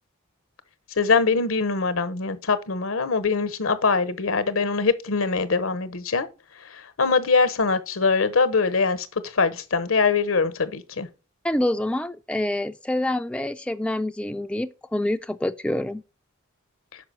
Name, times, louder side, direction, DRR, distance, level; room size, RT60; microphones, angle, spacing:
voice 1, 1.0-6.3 7.0-9.1 9.3-11.1, left 4 dB, 80° left, 0.9 m, -22 dB
voice 2, 11.4-16.0, left 1 dB, 5° left, 0.3 m, -26 dB
5.9 x 5.0 x 6.1 m
head